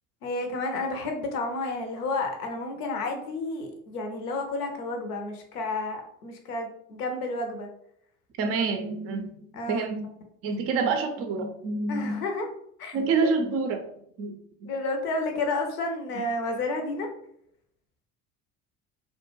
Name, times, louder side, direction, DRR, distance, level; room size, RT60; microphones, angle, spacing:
voice 1, 0.2-7.7 9.5-9.9 11.9-12.5 12.8-12.9 14.7-17.1, left 2 dB, 75° left, 4 dB, 0.7 m, -31 dB
voice 2, 8.4-9.4 9.7-10.1 10.4-12.2 12.9-13.8 14.2-14.7, right 4 dB, 30° right, 6 dB, 0.4 m, -27 dB
2.1 x 2.1 x 3.0 m, 0.70 s
figure-of-eight pair, 60°, 46 cm